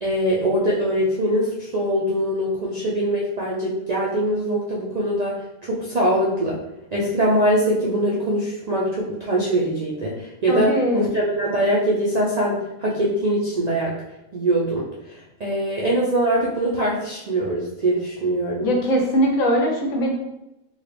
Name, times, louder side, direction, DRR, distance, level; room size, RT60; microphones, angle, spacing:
voice 1, 0.0-5.4 5.6-6.6 6.9-13.9 14.3-18.7, right 1 dB, 60° right, -5 dB, 0.4 m, -22 dB
voice 2, 10.5-11.1 18.6-20.1, equal, 80° left, 1 dB, 1.2 m, -21 dB
3.8 x 2.4 x 3.3 m, 0.92 s
omnidirectional pair, 1.4 m